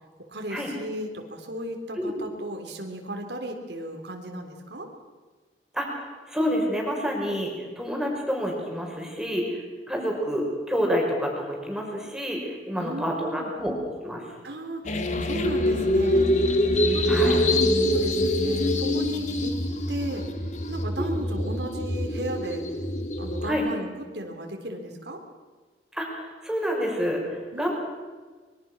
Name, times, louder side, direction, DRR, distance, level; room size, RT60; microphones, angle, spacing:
voice 1, 0.3-4.9 12.8-13.6 14.4-16.3 16.9-19.6 19.9-20.3 20.7-22.6 23.2-25.2 27.5-27.7, right 1 dB, 75° right, 3 dB, 3.5 m, -35 dB
voice 2, 5.7-9.6 9.9-13.7 14.0-14.2 16.0-16.3 17.1-17.5 21.0-21.2 23.5-23.6 25.9-27.7, equal, 5° right, -1 dB, 5.6 m, -28 dB
sound 1, 14.8-23.5, left 1 dB, 40° left, 2.2 m, -24 dB
25.0 x 23.0 x 6.3 m, 1.4 s
head